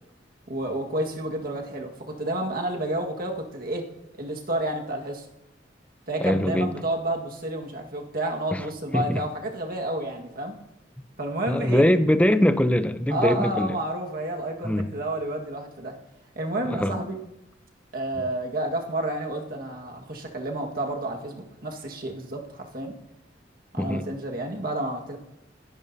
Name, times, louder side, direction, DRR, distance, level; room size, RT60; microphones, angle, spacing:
voice 1, 0.5-3.9 4.2-5.2 6.1-10.5 11.2-11.9 13.1-16.0 16.3-17.2 17.9-22.9 23.7-25.2, right 1 dB, 50° right, 1 dB, 1.6 m, -30 dB
voice 2, 6.2-6.7 8.5-8.6 8.9-9.2 11.5-13.8 14.6-14.9 16.6-17.0 23.8-24.1, left 1 dB, 5° left, 11 dB, 0.5 m, -22 dB
20.0 x 10.5 x 2.7 m, 0.87 s
head